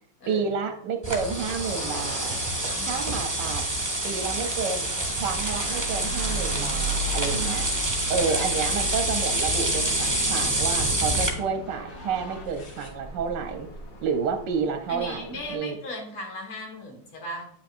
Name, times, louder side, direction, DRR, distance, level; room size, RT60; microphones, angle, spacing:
voice 1, 0.3-2.3 2.9-3.7 4.0-4.9 5.2-7.7 8.1-13.7 14.0-15.8, right 5 dB, 70° right, 6 dB, 1.1 m, -30 dB
sound 1, 1.0-15.6, left 1 dB, 40° left, 0.7 m, -37 dB
sound 2, 1.0-11.3, right 2 dB, 15° right, 0.7 m, -27 dB
voice 2, 2.7-3.3 7.3-7.8 14.9-17.5, left 1 dB, 80° left, 1 dB, 2.5 m, -38 dB
sound 3, 5.1-12.9, equal, 60° left, 2.2 m, -45 dB
8.7 x 6.2 x 2.5 m, 0.69 s
omnidirectional pair, 2.4 m